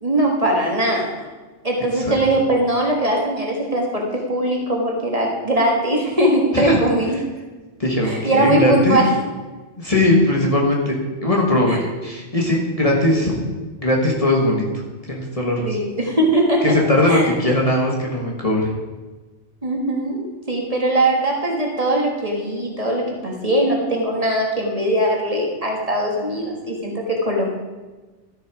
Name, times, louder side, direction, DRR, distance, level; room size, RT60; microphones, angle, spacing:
voice 1, 0.0-1.3 1.6-7.2 8.0-9.1 11.7-11.8 15.7-16.6 17.1-17.2 19.6-27.5, right 1 dB, 30° right, -1 dB, 1.7 m, -20 dB
voice 2, 7.8-9.0 9.8-13.4 13.8-14.7 15.0-15.8 16.6-18.7, left 1 dB, 30° left, -2 dB, 1.6 m, -19 dB
13.0 x 6.8 x 4.8 m, 1.2 s
omnidirectional pair, 1.2 m